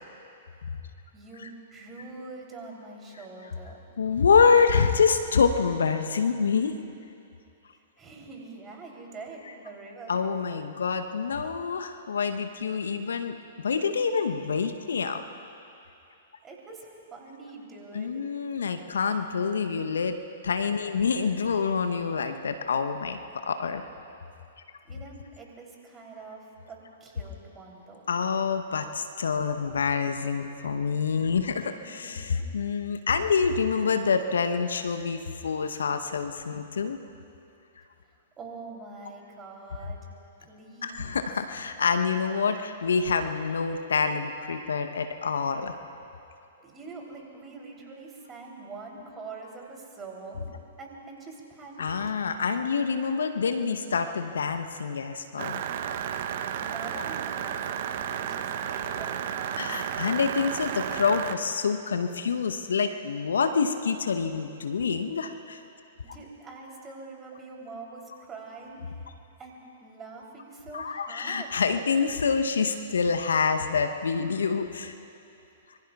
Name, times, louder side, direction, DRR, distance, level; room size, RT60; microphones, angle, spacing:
voice 1, 1.1-3.8 8.0-10.2 16.4-18.2 24.8-28.0 31.5-32.4 38.1-40.1 40.4-41.3 46.6-50.4 50.8-51.9 56.6-60.1 66.1-69.1 69.4-71.6, right 3 dB, 20° right, -1 dB, 3.2 m, -44 dB
voice 2, 4.0-6.7 10.1-13.4 13.6-15.2 17.9-20.2 20.4-23.8 28.1-37.0 40.8-45.8 51.8-55.6 59.6-65.6 70.7-74.9, left 5 dB, 70° left, 7 dB, 0.8 m, -26 dB
sound 1, 55.4-61.4, right 9 dB, 50° right, 0.8 m, -32 dB
25.5 x 24.0 x 2.4 m, 2.7 s
figure-of-eight pair, 110°, 0 cm